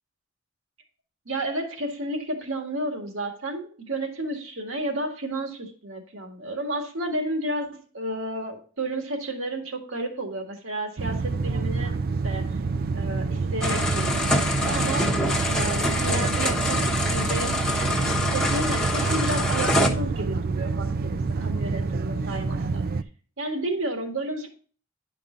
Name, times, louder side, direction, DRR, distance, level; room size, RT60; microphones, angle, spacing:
voice 1, 1.3-7.7 7.9-11.9 12.2-12.6 12.9-15.2 15.5-17.6 18.1-22.8 23.4-24.5, right 1 dB, 70° right, 3 dB, 1.9 m, -32 dB
sound 1, 11.0-23.0, right 4 dB, 50° right, 0.4 m, -27 dB
sound 2, 13.6-19.9, left 1 dB, 5° left, 1.1 m, -25 dB
10.5 x 5.3 x 3.9 m, 0.40 s
head